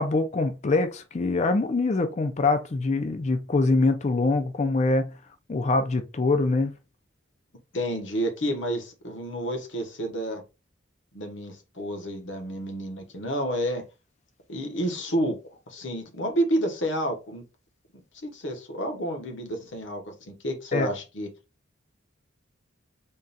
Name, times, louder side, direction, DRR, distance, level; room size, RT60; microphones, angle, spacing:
voice 1, 0.0-5.1 5.5-6.7 20.7-20.9, left 3 dB, 35° left, 0.4 m, -24 dB
voice 2, 7.7-10.4 11.1-13.8 14.5-15.4 15.7-17.4 18.2-21.3, equal, 65° left, 1.0 m, -30 dB
3.7 x 2.3 x 4.0 m
head